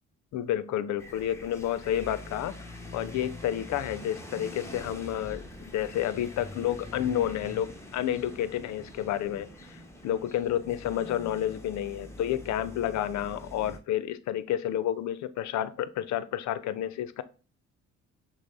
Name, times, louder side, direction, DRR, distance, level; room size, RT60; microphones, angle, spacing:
voice 1, 0.3-2.5 2.9-17.2, left 11 dB, 65° left, 0.5 m, -30 dB
sound 1, 1.0-13.8, left 1 dB, 10° left, 0.9 m, -44 dB
6.1 x 2.0 x 4.0 m
cardioid pair, 90°, 30 cm